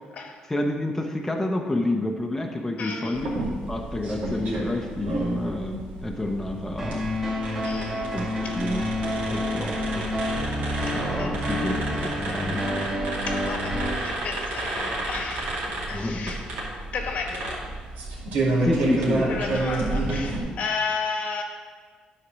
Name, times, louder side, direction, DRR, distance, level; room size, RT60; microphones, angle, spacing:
voice 1, 0.5-3.3 3.7-7.0 8.1-8.9 9.3-10.1 10.9-12.7 15.9-16.4 18.6-19.3, left 1 dB, 10° left, 2 dB, 0.8 m, -29 dB
voice 2, 2.8-3.2 7.6-8.1 8.4-8.5 11.2-11.4 13.3-13.8 14.0-15.5 15.9-16.4 16.9-17.7 19.3-21.4, left 4 dB, 60° left, 3 dB, 1.2 m, -32 dB
sound 1, 3.1-20.4, right 2 dB, 85° right, 2.4 m, -30 dB
sound 2, 6.8-13.9, left 1 dB, 20° right, 2.8 m, -29 dB
9.7 x 4.2 x 6.2 m, 1.6 s
cardioid pair, 115°, 3 cm